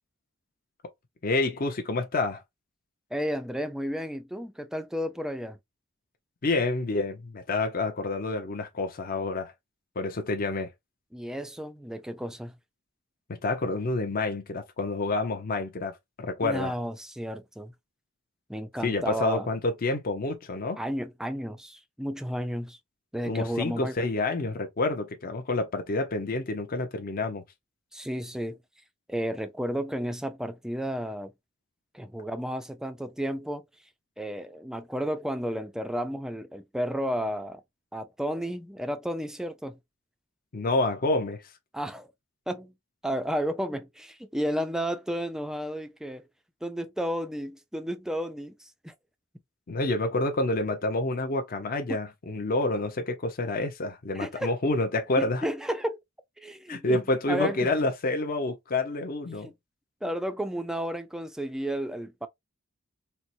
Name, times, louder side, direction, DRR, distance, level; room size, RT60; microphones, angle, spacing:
voice 1, 1.2-2.4 6.4-9.5 10.0-10.7 13.4-16.7 18.8-20.8 23.3-27.4 40.5-41.4 49.7-55.4 56.7-59.5, left 2 dB, 45° left, 0.6 m, -28 dB
voice 2, 3.1-5.6 11.1-12.6 16.4-17.7 18.5-19.5 20.8-22.8 23.1-24.1 27.9-28.6 29.1-31.3 31.9-33.6 34.2-37.6 37.9-39.8 41.7-42.1 42.5-42.7 43.0-46.2 46.6-48.9 54.1-54.5 55.2-56.0 56.4-57.7 60.0-62.3, equal, 5° right, 0.3 m, -32 dB
4.4 x 2.0 x 2.6 m
head